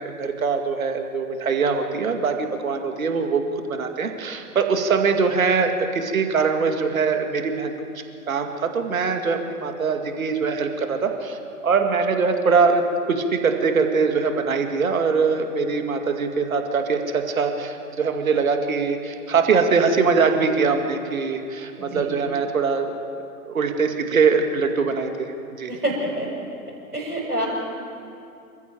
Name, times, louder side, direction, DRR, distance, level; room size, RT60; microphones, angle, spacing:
voice 1, 0.0-3.4 3.7-11.4 11.6-12.8 13.1-22.9 23.5-25.7, right 5 dB, 60° right, 5 dB, 2.3 m, -22 dB
voice 2, 21.8-22.2 25.7-26.3 26.9-27.4, right 1 dB, 85° right, -6 dB, 6.8 m, -27 dB
27.0 x 14.5 x 7.6 m, 2.6 s
figure-of-eight pair, 115°, 45 cm